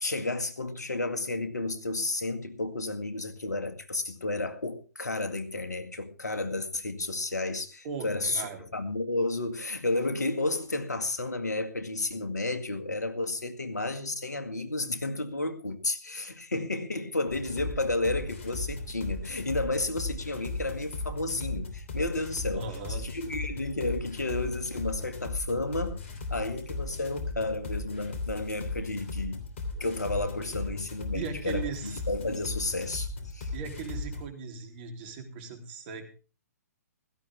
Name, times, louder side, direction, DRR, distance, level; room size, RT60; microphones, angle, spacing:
voice 1, 0.0-8.4 8.7-26.0 26.3-29.4 29.8-33.5, left 2 dB, 80° left, 2.0 m, -32 dB
voice 2, 7.8-8.6 22.5-23.0 31.1-32.0 33.5-36.1, right 6 dB, 40° right, 3.3 m, -38 dB
sound 1, 17.3-34.3, left 3 dB, 50° left, 3.2 m, -37 dB
16.5 x 14.0 x 3.5 m
figure-of-eight pair, 125°, 9 cm